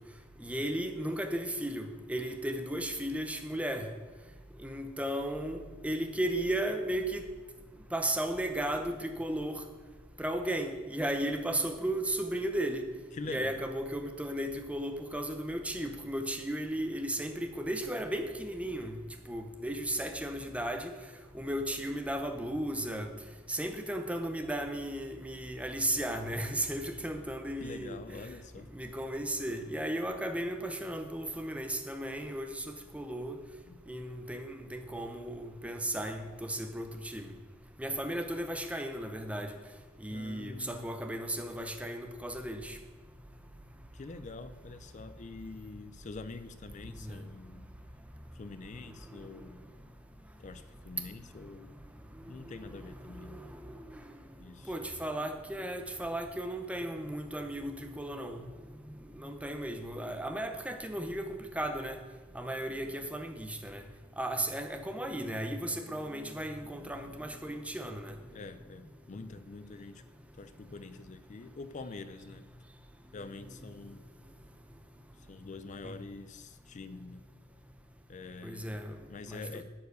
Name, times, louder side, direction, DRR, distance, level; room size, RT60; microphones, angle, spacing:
voice 1, 0.4-3.9 4.6-7.3 7.9-9.6 10.2-12.9 13.3-19.0 19.3-20.9 21.3-23.1 23.5-28.0 28.7-32.7 32.9-33.4 33.9-37.3 37.8-39.6 40.0-42.8 46.9-47.2 52.5-52.7 53.0-54.0 54.6-58.4 59.2-62.0 62.3-63.8 64.2-68.1 75.8-75.9 78.4-79.0 79.3-79.6, right 1 dB, 5° right, 0.8 m, -35 dB
voice 2, 13.1-13.6 27.6-28.7 33.7-33.8 40.1-40.9 43.9-47.7 48.3-49.6 50.4-51.7 52.3-53.4 54.4-54.8 68.3-70.0 70.3-72.5 73.1-74.0 75.2-77.2 78.1-78.8 79.1-79.6, left 3 dB, 40° left, 0.4 m, -45 dB
11.5 x 4.7 x 8.2 m
head